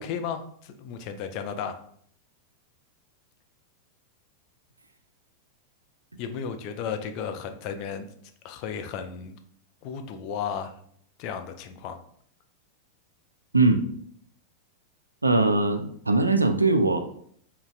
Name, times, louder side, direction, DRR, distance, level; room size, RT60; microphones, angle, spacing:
voice 1, 0.0-1.8 6.2-8.1 8.4-9.4 9.8-10.7 11.2-12.0, left 7 dB, 40° left, 7 dB, 0.3 m, -34 dB
voice 2, 13.5-13.8 15.2-17.0, right 3 dB, 80° right, 7 dB, 0.3 m, -21 dB
3.8 x 2.1 x 2.4 m, 0.63 s
figure-of-eight pair, 90°, 0 cm